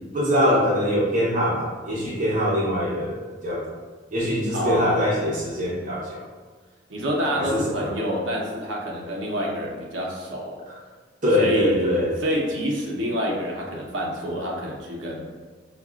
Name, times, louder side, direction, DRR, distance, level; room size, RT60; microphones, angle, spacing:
voice 1, 0.1-3.6 4.1-6.2 7.3-7.9 10.7-10.8 11.2-12.1, equal, 45° right, -7 dB, 0.8 m, -23 dB
voice 2, 4.5-5.1 6.9-10.7 11.4-15.3, equal, 75° right, -2 dB, 0.7 m, -27 dB
4.8 x 2.3 x 2.4 m, 1.5 s
head